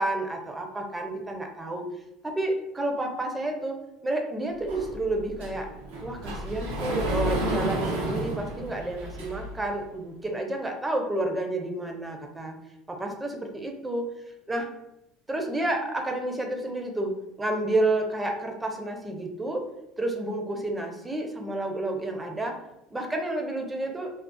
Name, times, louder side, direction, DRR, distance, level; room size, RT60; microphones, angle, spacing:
voice 1, 0.0-1.9 2.2-5.7 6.0-12.5 12.9-14.1 14.5-14.7 15.3-19.7 20.0-22.6 22.9-24.1, right 1 dB, 15° right, 3 dB, 0.5 m, -30 dB
Sliding door, 4.7-9.6, right 1 dB, 80° right, 0.5 m, -31 dB
2.4 x 2.3 x 2.2 m, 0.87 s
hypercardioid pair, 70°, 0 cm